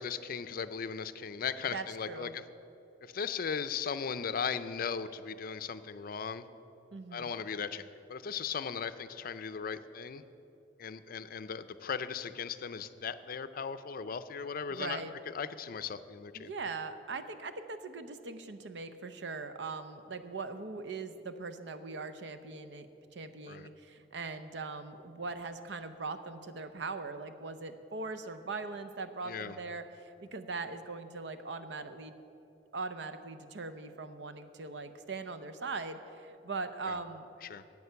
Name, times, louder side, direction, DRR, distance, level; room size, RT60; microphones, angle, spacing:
voice 1, 0.0-2.4 3.0-6.4 7.1-10.2 10.8-15.0 15.3-16.5 23.5-23.7 29.2-29.6 36.9-37.0 37.4-37.6, left 6 dB, 55° left, 12 dB, 0.5 m, -37 dB
voice 2, 1.7-2.4 6.9-7.3 14.7-15.1 16.3-22.9 23.1-32.1 32.7-37.3, right 4 dB, 75° right, 10 dB, 0.7 m, -40 dB
11.0 x 8.4 x 6.9 m, 2.9 s
head